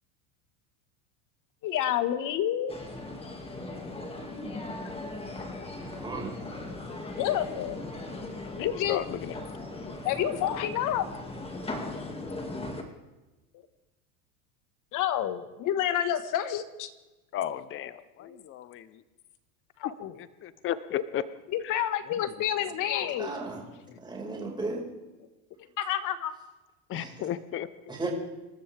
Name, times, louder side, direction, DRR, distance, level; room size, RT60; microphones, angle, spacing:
voice 1, 1.6-2.8 7.2-7.8 8.6-9.0 9.8-11.1 14.9-16.9 18.2-18.4 19.8-20.2 20.9-21.0 21.5-23.4 25.8-26.3, left 11 dB, 45° left, 11 dB, 1.5 m, -29 dB
sound 1, 2.7-12.8, left 2 dB, 15° left, 2.1 m, -38 dB
voice 2, 5.8-6.3 23.2-23.6 24.0-24.8 26.9-27.1 27.9-28.1, right 3 dB, 10° right, -2 dB, 5.0 m, -35 dB
voice 3, 8.4-9.3 9.7-9.8 17.3-19.0 20.2-21.2 21.6-21.7 22.1-22.2 22.9-23.0 23.9-24.0 26.9-27.7, left 11 dB, 30° left, 14 dB, 0.7 m, -35 dB
27.5 x 13.0 x 3.5 m, 1.1 s
supercardioid pair, 130°, 44 cm